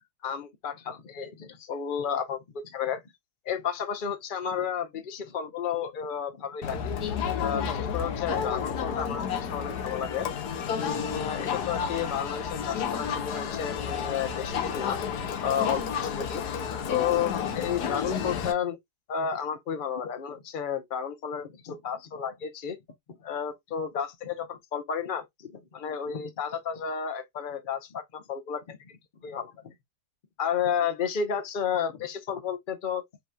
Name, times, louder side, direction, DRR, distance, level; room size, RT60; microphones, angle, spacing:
voice 1, 0.2-3.0 3.4-6.8 7.4-10.3 10.8-15.0 15.4-16.4 16.8-18.8 19.1-22.8 23.2-29.7 30.4-33.0, left 8 dB, 40° left, 0.9 m, -32 dB
Crowd, 6.6-18.5, left 7 dB, 80° left, 1.4 m, -31 dB
5.7 x 3.0 x 2.3 m
omnidirectional pair, 1.7 m